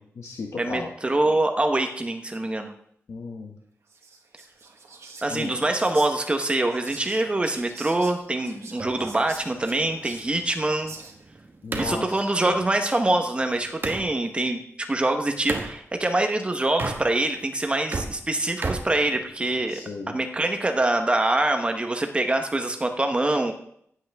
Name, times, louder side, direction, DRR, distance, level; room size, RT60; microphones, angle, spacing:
voice 1, 0.0-0.9 3.1-3.5 5.3-5.5 11.6-12.6 19.7-20.1, left 3 dB, 75° left, 0 dB, 1.3 m, -35 dB
voice 2, 0.6-2.7 5.2-11.0 11.8-14.6 14.9-19.8 20.1-23.5, right 2 dB, 20° right, 5 dB, 1.1 m, -24 dB
Whispering, 3.9-11.4, right 4 dB, 65° right, 1.5 m, -45 dB
sound 1, 8.8-14.1 15.5-15.7 16.7-17.4 17.7-19.7, right 3 dB, 40° right, 1.3 m, -34 dB
16.0 x 8.1 x 3.6 m, 0.68 s
wide cardioid pair, 155°, 5 cm